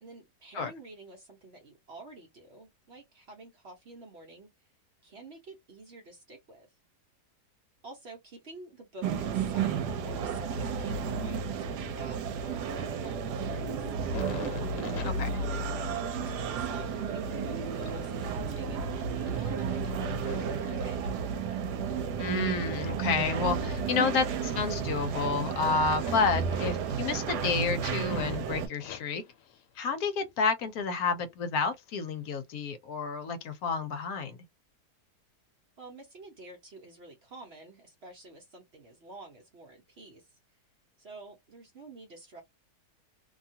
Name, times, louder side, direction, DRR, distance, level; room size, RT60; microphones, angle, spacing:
voice 1, 0.0-4.5 5.0-6.7 7.8-13.9 14.7-21.1 35.8-40.3 41.0-42.4, right 2 dB, 50° right, 0.9 m, -49 dB
sound 1, 9.0-28.7, right 6 dB, 85° right, 1.2 m, -32 dB
sound 2, 13.9-21.6 22.0-24.6 24.9-25.6 25.9-28.4 28.7-30.3 30.6-31.3 31.9-32.1, left 10 dB, 90° left, 1.2 m, -49 dB
voice 2, 22.2-29.2 29.8-34.4, left 5 dB, 70° left, 1.1 m, -30 dB
2.8 x 2.3 x 2.7 m
omnidirectional pair, 1.7 m